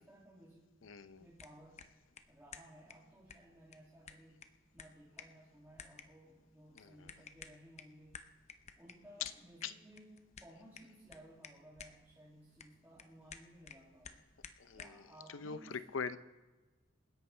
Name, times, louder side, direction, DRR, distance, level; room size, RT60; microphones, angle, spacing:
voice 1, 0.0-0.7 1.2-1.9 2.3-4.4 4.7-8.3 8.8-10.1 10.4-14.3 14.7-15.8, right 1 dB, 10° right, -8 dB, 2.5 m, -58 dB
voice 2, 0.8-1.3 6.8-7.1 9.2-9.3 9.6-9.7 14.6-15.0 15.3-16.2, left 6 dB, 90° left, 13 dB, 0.7 m, -42 dB
sound 1, 1.2-15.1, left 6 dB, 35° left, 0.7 m, -56 dB
27.5 x 11.0 x 3.3 m, 1.2 s
head